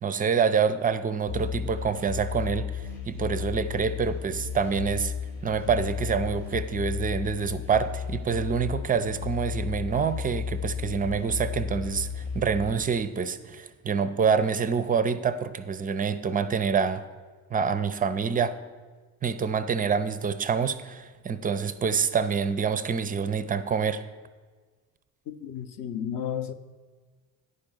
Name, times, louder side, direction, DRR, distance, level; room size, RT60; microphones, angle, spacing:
voice 1, 0.0-5.1 5.4-17.0 17.5-18.6 19.2-24.0, right 6 dB, 20° right, 0.4 m, -27 dB
sound 1, 1.3-12.8, left 6 dB, 85° left, 1.4 m, -34 dB
voice 2, 25.3-26.5, left 8 dB, 45° left, 0.7 m, -33 dB
9.8 x 5.2 x 6.9 m
figure-of-eight pair, 45°, 49 cm